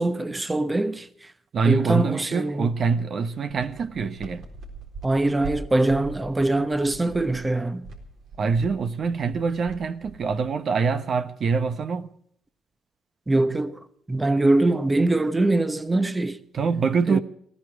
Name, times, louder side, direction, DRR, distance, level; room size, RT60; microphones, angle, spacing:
voice 1, 0.0-1.3 1.6-2.7 5.0-7.9 13.3-13.8 14.1-16.4 17.1-17.2, right 2 dB, 15° right, 1.0 m, -23 dB
voice 2, 1.5-4.5 8.4-12.1 16.5-17.2, right 5 dB, 55° right, 1.1 m, -24 dB
sound 1, 3.5-10.6, right 2 dB, 75° right, 4.1 m, -42 dB
19.0 x 16.0 x 4.8 m
cardioid pair, 90°, 0 cm